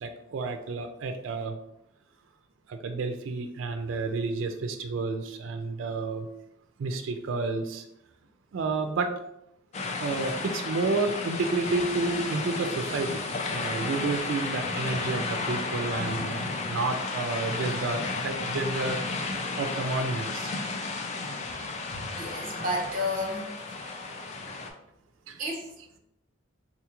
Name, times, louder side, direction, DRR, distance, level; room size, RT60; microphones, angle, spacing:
voice 1, 0.0-1.5 2.7-6.3 6.8-7.8 8.5-9.1 10.0-13.2 13.5-19.0 19.6-20.5, right 3 dB, 75° right, 6 dB, 0.4 m, -30 dB
sound 1, 9.7-24.7, left 3 dB, 35° left, 0.4 m, -33 dB
voice 2, 21.6-23.5 25.4-25.6, left 1 dB, 45° right, -1 dB, 0.9 m, -32 dB
3.8 x 2.4 x 2.9 m, 0.81 s
head